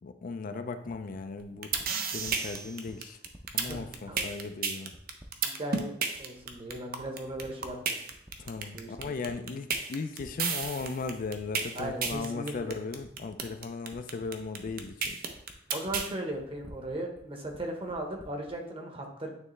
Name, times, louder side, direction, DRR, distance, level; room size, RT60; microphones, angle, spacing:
voice 1, 0.0-1.7 2.1-3.2 3.5-4.9 8.4-15.2, left 4 dB, 50° left, 9 dB, 0.4 m, -37 dB
sound 1, 0.9-18.6, equal, 10° right, 0.6 m, -51 dB
sound 2, 1.4-16.1, right 6 dB, 55° right, 0.7 m, -31 dB
voice 2, 3.6-4.2 5.4-5.9 6.2-8.0 8.7-9.2 11.7-12.8 15.7-19.3, right 1 dB, 30° right, 2 dB, 1.0 m, -37 dB
9.3 x 3.2 x 3.2 m, 0.73 s
head